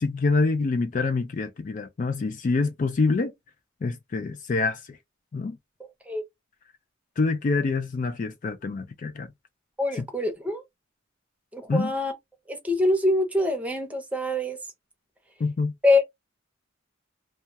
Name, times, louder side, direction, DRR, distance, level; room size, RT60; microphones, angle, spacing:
voice 1, 0.0-3.3 3.8-5.0 5.3-5.6 7.2-9.3 9.9-10.1 11.7-11.9 15.4-15.7, left 3 dB, 40° left, 0.3 m, -26 dB
voice 2, 9.8-10.6 11.5-12.1 12.5-14.6 15.8-16.0, left 2 dB, 5° right, 0.6 m, -24 dB
2.3 x 2.2 x 2.7 m
head